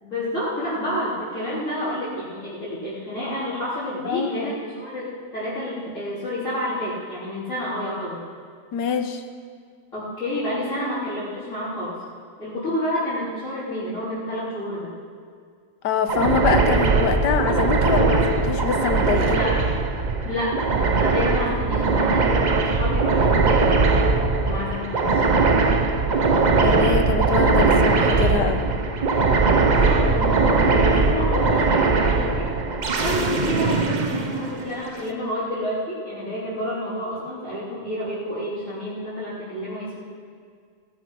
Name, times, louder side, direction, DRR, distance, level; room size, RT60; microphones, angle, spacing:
voice 1, 0.0-5.1 5.3-8.2 9.9-12.0 12.4-14.9 19.2-19.6 20.2-23.9 24.4-25.2 29.6-32.5 33.0-40.0, left 1 dB, 45° left, -13 dB, 4.0 m, -29 dB
voice 2, 4.0-4.5 8.7-9.2 15.8-19.4 25.2-25.5 26.6-28.6, left 6 dB, 85° left, 8 dB, 1.6 m, -25 dB
sound 1, 16.1-34.9, right 4 dB, 45° right, 0.6 m, -20 dB
17.5 x 11.0 x 5.0 m, 2.1 s
omnidirectional pair, 1.8 m